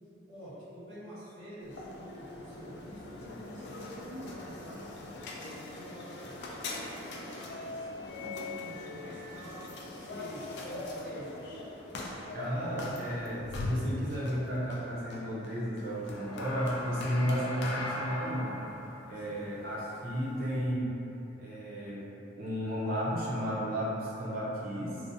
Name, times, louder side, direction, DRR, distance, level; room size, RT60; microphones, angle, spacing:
voice 1, 0.3-4.8 5.3-7.9 8.2-11.5 19.1-19.5, equal, 85° right, -17 dB, 1.0 m, -47 dB
sound 1, 1.6-20.7, left 2 dB, 65° left, 0.3 m, -40 dB
voice 2, 12.3-18.6 19.1-20.9 21.4-22.1 22.4-25.0, equal, 50° right, -7 dB, 0.5 m, -33 dB
2.6 x 2.0 x 2.5 m, 2.9 s
head